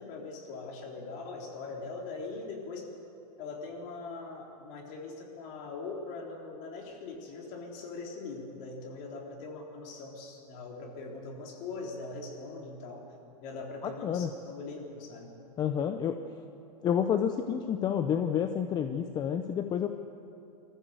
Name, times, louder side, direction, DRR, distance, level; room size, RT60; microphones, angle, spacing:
voice 1, 0.0-2.9 3.4-13.1 13.4-15.4, left 3 dB, 40° left, 0 dB, 3.7 m, -41 dB
voice 2, 15.6-16.2 16.8-19.9, left 8 dB, 20° left, 8 dB, 0.6 m, -29 dB
23.0 x 14.5 x 7.8 m, 2.8 s
supercardioid pair, 150°, 21 cm